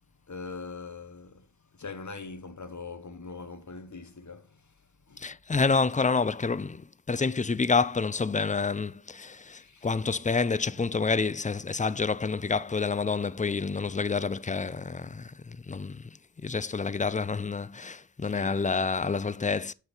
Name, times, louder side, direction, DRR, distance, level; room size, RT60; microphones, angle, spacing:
voice 1, 0.3-1.5 1.7-4.7 5.1-5.4 9.5-10.0 18.2-18.6, left 4 dB, 55° left, 1.0 m, -42 dB
voice 2, 5.2-16.1 16.4-19.7, left 4 dB, 25° left, 0.3 m, -28 dB
7.9 x 4.0 x 4.3 m
wide cardioid pair, 60°, 34 cm